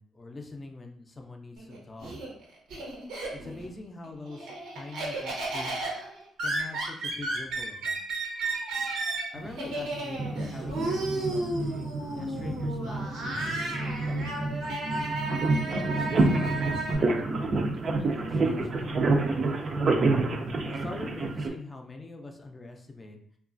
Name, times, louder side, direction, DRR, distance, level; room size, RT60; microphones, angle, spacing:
voice 1, 0.0-2.1 3.4-5.8 6.4-8.0 9.3-14.7 15.6-17.2 17.7-19.8 20.6-23.2, left 2 dB, 25° left, 3 dB, 0.4 m, -44 dB
Laughter, 1.6-3.7 4.0-16.9, right 2 dB, 90° right, 0.8 m, -33 dB
sound 1, 9.3-21.5, right 2 dB, 50° right, 0.4 m, -28 dB
2.9 x 2.3 x 2.5 m, 0.63 s
cardioid pair, 90°, 0 cm